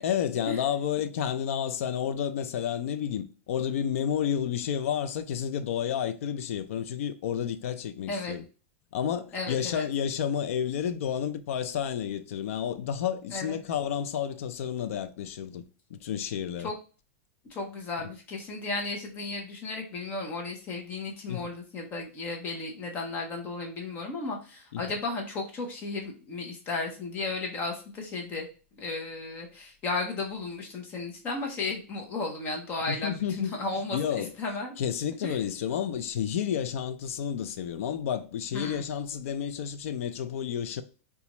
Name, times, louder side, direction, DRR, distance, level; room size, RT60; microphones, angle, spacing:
voice 1, 0.0-8.4 8.9-15.6 15.9-16.7 21.3-21.4 24.7-24.8 32.9-33.6 33.9-34.3 34.8-40.8, left 9 dB, 75° left, 0.4 m, -31 dB
voice 2, 9.3-9.9 13.3-13.6 16.6-16.7 17.5-28.5 28.8-34.8 35.2-35.4 38.5-38.8, left 3 dB, 25° left, 0.7 m, -34 dB
4.1 x 2.3 x 2.9 m
supercardioid pair, 165°, 7 cm